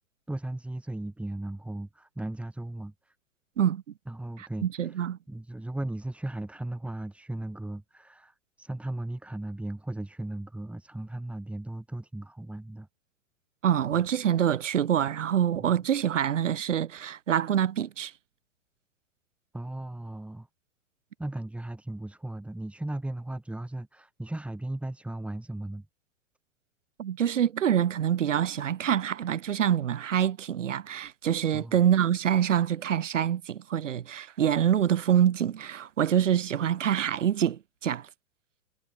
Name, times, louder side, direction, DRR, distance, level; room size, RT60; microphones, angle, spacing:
voice 1, 0.3-2.9 4.1-4.9 5.3-12.9 15.6-15.7 19.5-20.5 21.2-25.9 31.5-31.8, right 1 dB, 5° right, 2.1 m, -36 dB
voice 2, 4.4-5.2 13.6-18.1 27.0-38.1, right 9 dB, 75° right, 1.2 m, -26 dB
hypercardioid pair, 110°, 38 cm